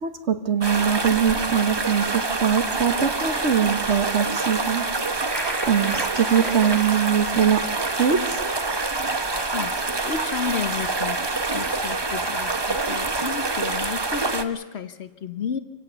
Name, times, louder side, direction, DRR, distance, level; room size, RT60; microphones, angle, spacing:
voice 1, 0.0-4.8 5.7-8.3, right 7 dB, 70° right, 8 dB, 1.6 m, -22 dB
sound 1, 0.6-14.4, right 3 dB, 25° right, 0.8 m, -26 dB
sound 2, 5.3-6.9, equal, ahead, 1.6 m, -33 dB
voice 2, 10.0-15.6, left 7 dB, 60° left, 11 dB, 1.2 m, -32 dB
26.0 x 17.0 x 6.9 m, 1.2 s
omnidirectional pair, 1.3 m